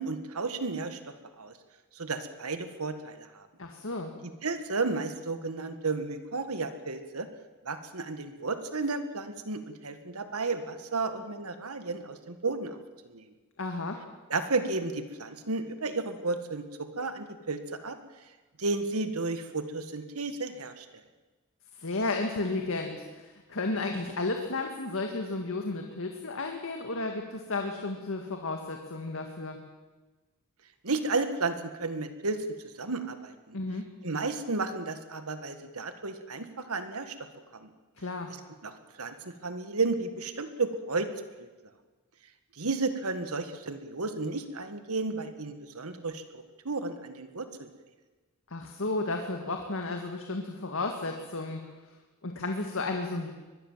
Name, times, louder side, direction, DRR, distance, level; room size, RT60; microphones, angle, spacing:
voice 1, 0.0-1.5 1.9-3.5 4.4-7.3 7.6-12.8 13.1-13.3 14.3-18.0 18.6-20.8 30.8-32.5 32.8-33.6 34.0-37.1 37.6-37.7 38.6-38.7 39.0-41.1 41.4-41.5 42.6-47.7, right 3 dB, 70° right, 9 dB, 1.7 m, -33 dB
voice 2, 3.6-4.1 13.6-14.0 21.8-29.6 33.5-33.9 38.0-38.3 48.5-51.6 52.2-53.3, left 3 dB, 65° left, 4 dB, 2.0 m, -33 dB
24.0 x 20.5 x 7.4 m, 1.2 s
head